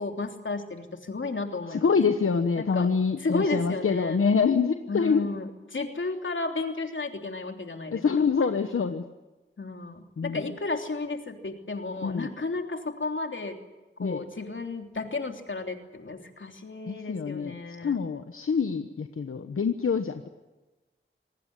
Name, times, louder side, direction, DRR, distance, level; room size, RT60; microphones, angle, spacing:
voice 1, 0.0-1.9 2.6-2.9 3.2-4.2 4.9-8.3 9.6-13.6 14.0-18.0, left 3 dB, 65° left, 4 dB, 3.2 m, -33 dB
voice 2, 1.7-5.3 7.9-9.0 10.2-10.4 12.0-12.3 14.0-14.2 16.9-17.5 17.8-20.3, left 5 dB, 85° left, 8 dB, 1.1 m, -26 dB
26.0 x 19.0 x 9.9 m, 1.1 s
wide cardioid pair, 65°, 21 cm